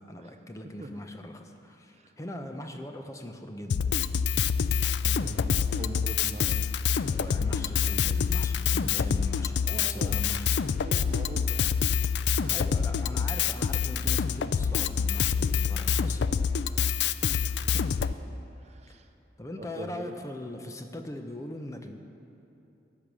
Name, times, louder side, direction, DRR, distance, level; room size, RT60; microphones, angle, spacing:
voice 1, 0.0-4.1 7.0-10.5 12.4-16.2 18.9-19.0 19.4-22.0, left 1 dB, 15° left, 6 dB, 0.6 m, -41 dB
Drum kit, 3.7-18.1, left 7 dB, 70° left, 0.4 m, -26 dB
voice 2, 5.0-6.7 9.7-10.3 10.8-11.8 17.4-17.9 18.6-19.1 19.5-20.2, right 2 dB, 35° right, 7 dB, 0.5 m, -42 dB
13.5 x 8.6 x 6.2 m, 2.8 s
head